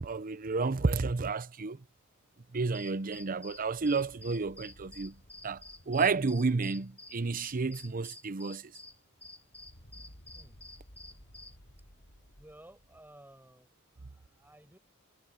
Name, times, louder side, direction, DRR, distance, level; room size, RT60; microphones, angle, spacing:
voice 1, 0.0-1.8 2.5-5.1 5.4-8.7, right 4 dB, 40° right, 0.7 m, -31 dB
sound 1, 2.7-11.6, left 2 dB, 5° left, 0.8 m, -50 dB
sound 2, 3.1-8.2 8.4-8.5 8.8-13.2, equal, 55° left, 7.9 m, -57 dB
voice 2, 12.4-13.7 14.0-14.8, right 1 dB, 10° right, 6.2 m, -56 dB
head